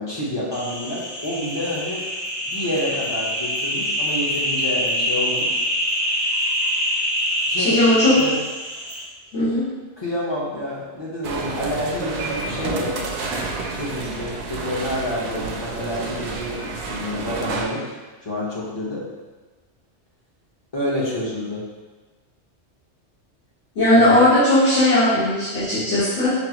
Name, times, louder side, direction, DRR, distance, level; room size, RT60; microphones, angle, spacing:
voice 1, 0.0-2.0 2.4-5.6 7.5-7.8 8.1-8.4 10.0-12.9 13.7-17.8 18.2-19.1 20.7-21.6 23.9-24.3, left 1 dB, 25° left, -6 dB, 0.9 m, -28 dB
sound 1, 0.5-9.0, equal, 15° right, 0.5 m, -25 dB
voice 2, 7.6-8.2 9.3-9.7 23.8-26.3, left 1 dB, 70° left, -17 dB, 1.7 m, -17 dB
sound 2, 11.2-17.7, right 3 dB, 70° right, 0.8 m, -29 dB
6.1 x 2.2 x 2.9 m, 1.3 s
omnidirectional pair, 1.2 m